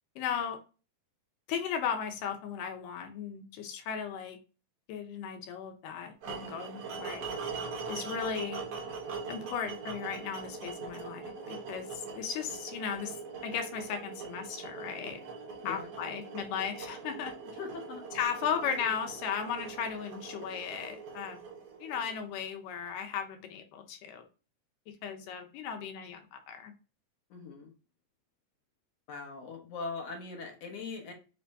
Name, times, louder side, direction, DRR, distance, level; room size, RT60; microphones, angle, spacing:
voice 1, 0.2-0.6 1.5-4.4 4.9-7.3 7.9-8.6 9.3-13.2 13.4-15.2 15.7-17.3 18.1-21.4 21.8-24.2 25.0-26.7, left 7 dB, 80° left, 5 dB, 2.3 m, -36 dB
sound 1, 6.2-22.3, right 5 dB, 65° right, 1.5 m, -42 dB
voice 2, 17.6-18.0 27.3-27.7 29.1-31.1, left 4 dB, 60° left, 0 dB, 1.8 m, -40 dB
5.2 x 2.6 x 3.4 m, 0.34 s
omnidirectional pair, 3.8 m